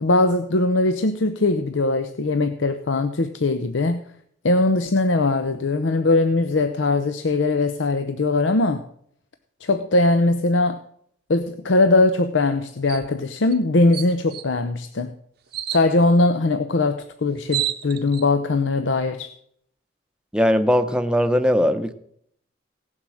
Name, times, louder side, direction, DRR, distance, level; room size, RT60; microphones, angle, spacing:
voice 1, 0.0-4.0 4.4-8.8 9.6-10.8 11.3-15.1 15.7-19.3, left 2 dB, 85° left, 9 dB, 0.7 m, -20 dB
sound 1, 12.9-13.1 13.5-13.6 13.9-14.5 15.5-15.8 17.0-17.1 17.3-18.2, right 13 dB, 55° right, 0.7 m, -29 dB
voice 2, 20.3-21.9, equal, 5° right, 8 dB, 0.7 m, -19 dB
17.0 x 7.4 x 6.3 m, 0.69 s
head